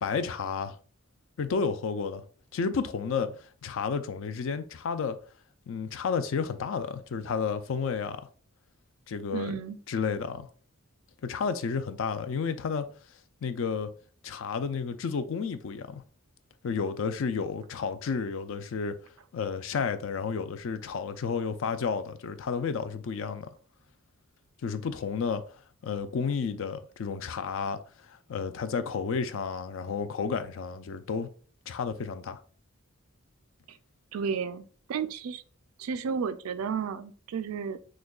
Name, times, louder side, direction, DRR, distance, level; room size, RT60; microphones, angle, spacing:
voice 1, 0.0-0.8 1.4-2.2 2.5-5.2 5.7-8.2 9.1-9.5 9.9-10.5 11.2-12.9 13.4-13.9 14.2-16.0 16.6-19.0 19.3-23.5 24.6-25.4 25.8-27.8 28.1-31.3 31.7-32.4, left 5 dB, 65° left, 0.4 m, -31 dB
voice 2, 9.3-9.8 33.7-33.8 34.1-35.4 35.8-37.8, right 6 dB, 85° right, 0.4 m, -32 dB
6.2 x 2.2 x 2.3 m
head